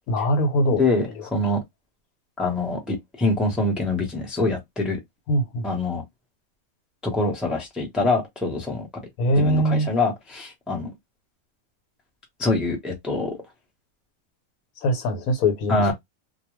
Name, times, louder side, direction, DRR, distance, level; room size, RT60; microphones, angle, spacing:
voice 1, 0.1-0.8 5.3-5.6 9.2-9.9 14.8-15.9, equal, 75° left, 1.2 m, -22 dB
voice 2, 0.7-1.6 2.4-5.0 5.6-6.0 7.0-8.9 9.3-10.9 12.4-13.3 15.7-15.9, left 2 dB, ahead, 0.7 m, -24 dB
2.4 x 2.2 x 3.0 m
omnidirectional pair, 1.5 m